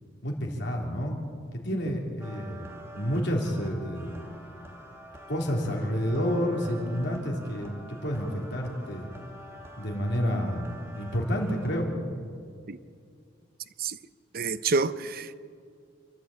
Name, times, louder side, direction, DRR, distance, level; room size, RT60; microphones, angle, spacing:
voice 1, 0.2-1.2 1.6-4.1 5.3-7.7 8.0-9.1 9.8-11.9, equal, 65° left, 3.7 m, -29 dB
sound 1, 2.2-11.8, right 1 dB, 15° right, 2.5 m, -46 dB
voice 2, 14.3-15.4, right 4 dB, 50° right, 0.7 m, -28 dB
28.0 x 12.5 x 8.6 m
head